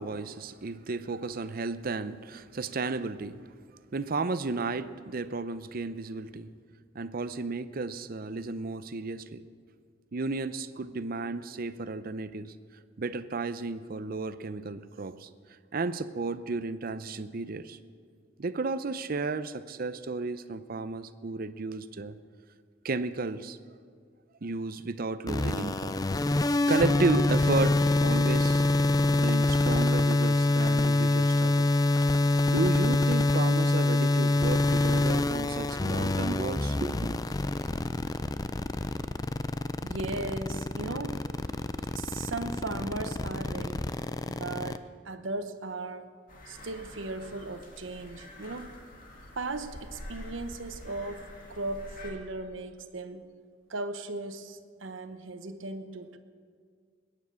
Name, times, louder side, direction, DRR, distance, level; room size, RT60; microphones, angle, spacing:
voice 1, 0.0-3.4 3.9-6.5 6.9-9.4 10.1-12.5 13.0-15.3 15.7-17.8 18.4-22.2 22.8-23.6 24.4-26.0 26.4-28.6 29.1-31.7 32.5-37.2, right 3 dB, 50° right, 0.6 m, -33 dB
sound 1, 25.3-44.8, left 2 dB, 20° left, 0.4 m, -25 dB
voice 2, 39.8-41.2 41.9-43.9 44.3-46.1 46.5-48.8 49.4-53.3 53.7-56.2, right 2 dB, 80° right, 0.9 m, -37 dB
sound 2, 46.3-52.1, left 1 dB, 45° left, 2.5 m, -46 dB
21.0 x 9.7 x 6.4 m
head